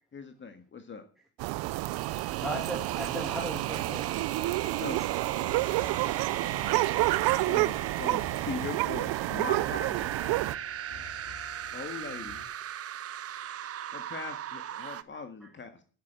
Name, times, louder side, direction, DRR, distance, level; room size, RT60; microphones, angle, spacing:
voice 1, 0.1-1.0 4.7-5.3 7.4-10.1 11.7-12.4 13.9-15.8, left 5 dB, 30° left, 7 dB, 1.7 m, -40 dB
sound 1, 1.4-10.5, right 20 dB, 70° right, 0.6 m, -29 dB
sound 2, 1.6-15.0, right 10 dB, 40° right, 0.8 m, -39 dB
voice 2, 2.1-4.5 14.9-15.0, right 1 dB, ahead, 0 dB, 2.4 m, -38 dB
sound 3, 5.2-12.4, left 5 dB, 90° left, 3.4 m, -50 dB
voice 3, 10.9-11.2, right 3 dB, 20° right, 3 dB, 4.0 m, -52 dB
10.0 x 9.1 x 8.8 m, 0.41 s
cardioid pair, 115°, 38 cm